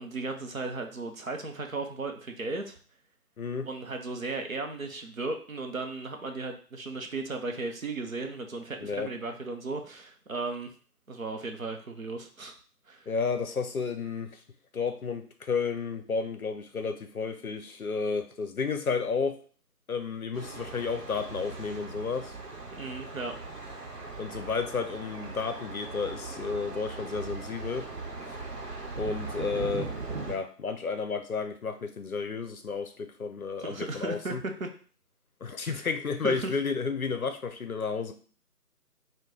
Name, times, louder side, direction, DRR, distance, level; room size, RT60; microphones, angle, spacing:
voice 1, 0.0-2.8 3.7-10.7 11.1-12.5 12.9-13.1 22.8-23.4 33.6-34.7 35.7-35.8 36.2-36.5, right 3 dB, 60° right, 4 dB, 0.6 m, -35 dB
voice 2, 3.4-3.7 8.8-9.1 13.1-14.4 14.7-19.4 19.9-22.3 24.2-27.9 28.3-28.4 29.0-29.9 30.2-34.4 35.4-38.1, left 5 dB, 65° left, 8 dB, 0.6 m, -32 dB
Thunder, 20.3-30.4, right 3 dB, 85° right, 0.9 m, -39 dB
3.0 x 2.2 x 3.7 m, 0.42 s
figure-of-eight pair, 170°, 47 cm